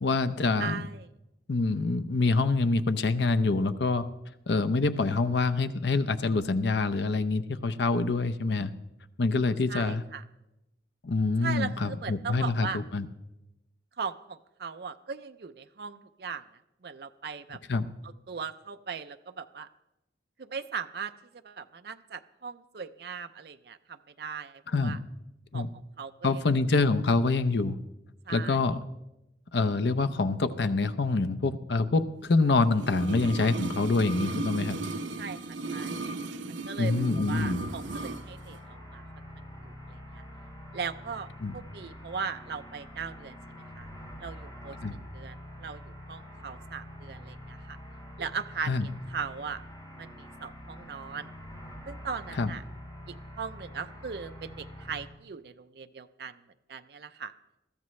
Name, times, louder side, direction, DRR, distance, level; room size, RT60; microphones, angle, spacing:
voice 1, 0.0-0.8 1.5-4.0 4.5-8.7 9.2-10.0 11.0-13.1 17.5-17.9 24.7-25.0 25.5-25.7 26.2-27.8 28.3-28.8 29.5-34.8 36.8-37.7 41.4-41.5 44.8-44.9 48.6-48.9 52.4-52.5, left 3 dB, 70° left, 10 dB, 0.7 m, -26 dB
voice 2, 0.6-1.1 9.7-10.2 11.4-12.8 14.0-16.4 16.8-17.6 18.3-19.7 20.4-21.1 21.4-25.0 25.5-25.7 26.0-26.4 28.3-28.6 35.2-35.4 35.7-36.0 36.5-39.0 39.6-40.2 40.7-41.3 41.5-43.9 44.2-44.8 45.1-47.8 48.2-49.6 50.0-51.3 51.9-52.6 53.4-56.4 56.7-57.3, right 5 dB, 60° right, 9 dB, 0.5 m, -38 dB
sound 1, 32.7-38.2 38.5-38.6, right 3 dB, 90° right, 0.8 m, -35 dB
sound 2, 37.3-55.0, equal, 25° left, 3.8 m, -46 dB
21.5 x 13.5 x 3.2 m, 0.93 s
head